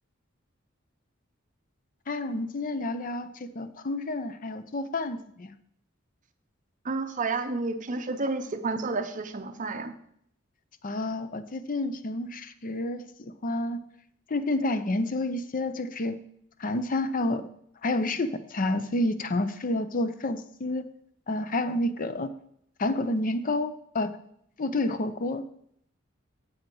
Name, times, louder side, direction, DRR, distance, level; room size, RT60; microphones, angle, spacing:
voice 1, 2.1-5.5 10.8-13.8 14.3-16.2 16.6-17.5 17.8-20.8 21.3-22.3 22.8-24.2 24.6-25.4, left 2 dB, 40° left, 12 dB, 0.6 m, -29 dB
voice 2, 6.8-9.9, right 3 dB, 40° right, 8 dB, 0.7 m, -30 dB
7.6 x 7.4 x 4.6 m, 0.69 s
head